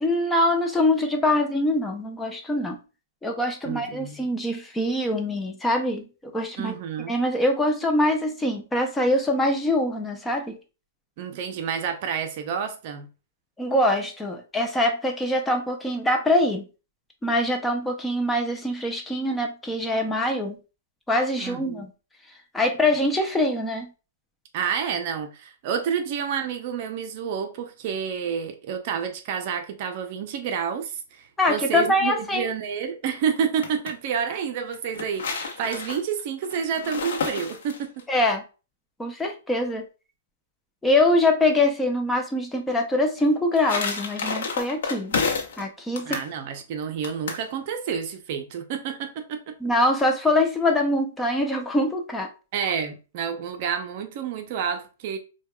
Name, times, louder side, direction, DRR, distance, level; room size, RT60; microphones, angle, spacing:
voice 1, 0.0-2.8 3.2-6.8 7.1-10.6 13.6-16.6 17.2-20.6 21.1-21.9 22.5-23.9 31.4-32.5 38.1-38.4 39.0-39.8 40.8-45.1 45.6-46.2 49.6-52.3, left 1 dB, 10° left, 0.5 m, -23 dB
voice 2, 3.6-4.3 6.6-7.1 11.2-13.1 21.4-21.8 24.5-38.1 46.0-49.6 52.5-55.2, right 7 dB, 45° right, 0.5 m, -29 dB
sound 1, 33.4-33.9 34.7-38.0 43.2-45.6 46.0-46.3 47.0-47.5, left 5 dB, 70° left, 0.8 m, -30 dB
4.4 x 2.2 x 2.2 m
hypercardioid pair, 145°, 0 cm